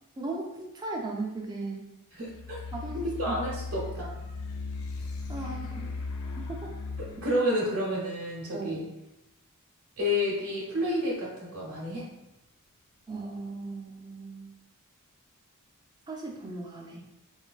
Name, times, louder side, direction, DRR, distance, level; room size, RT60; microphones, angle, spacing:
voice 1, 0.2-1.9 2.7-3.4 5.3-5.9 6.4-6.7 8.5-8.9 13.1-14.5 16.1-17.0, right 3 dB, 20° right, 0 dB, 0.3 m, -37 dB
voice 2, 2.1-2.6 2.9-4.1 7.0-8.8 10.0-12.1, left 1 dB, 80° right, -7 dB, 0.7 m, -30 dB
sound 1, 2.3-7.3, left 3 dB, 70° left, 0.4 m, -37 dB
3.2 x 2.2 x 2.3 m, 0.91 s
head